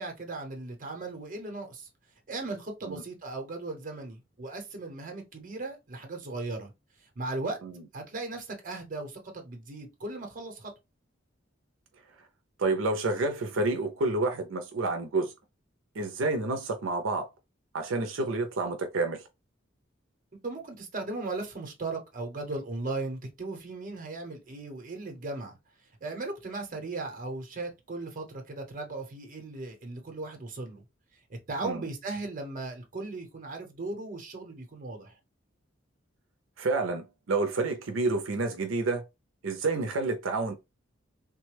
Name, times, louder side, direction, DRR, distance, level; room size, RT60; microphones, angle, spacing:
voice 1, 0.0-1.9 2.3-6.7 7.2-7.6 7.9-10.7 20.4-25.6 26.0-30.8 31.3-35.2, right 2 dB, 45° right, 0.9 m, -37 dB
voice 2, 12.6-15.3 16.0-17.3 17.7-19.2 31.6-31.8 36.6-39.0 39.4-40.5, right 3 dB, 90° right, 0.5 m, -29 dB
3.3 x 2.1 x 3.2 m
head